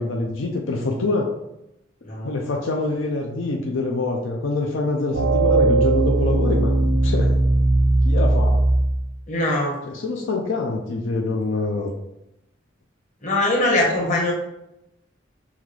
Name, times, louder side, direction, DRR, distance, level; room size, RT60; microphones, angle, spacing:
voice 1, 0.0-1.3 2.2-7.3 8.0-8.6 9.9-11.9, left 3 dB, 75° left, 0 dB, 0.5 m, -25 dB
voice 2, 2.0-2.3 9.3-9.8 13.2-14.3, left 1 dB, 40° left, -3 dB, 1.1 m, -21 dB
sound 1, 5.1-9.1, right 2 dB, 85° right, 0.7 m, -18 dB
5.6 x 2.4 x 3.1 m, 0.88 s
head